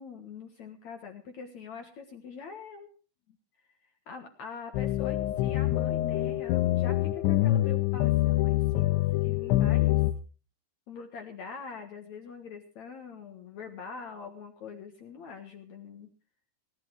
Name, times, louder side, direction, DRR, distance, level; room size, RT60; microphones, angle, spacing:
voice 1, 0.0-2.9 3.3-3.4 4.1-8.9 9.2-10.0 10.9-16.1, left 5 dB, 60° left, 5 dB, 1.9 m, -44 dB
sound 1, 4.7-10.1, left 15 dB, 85° left, 3.3 m, -25 dB
19.0 x 11.5 x 4.7 m, 0.36 s
omnidirectional pair, 5.3 m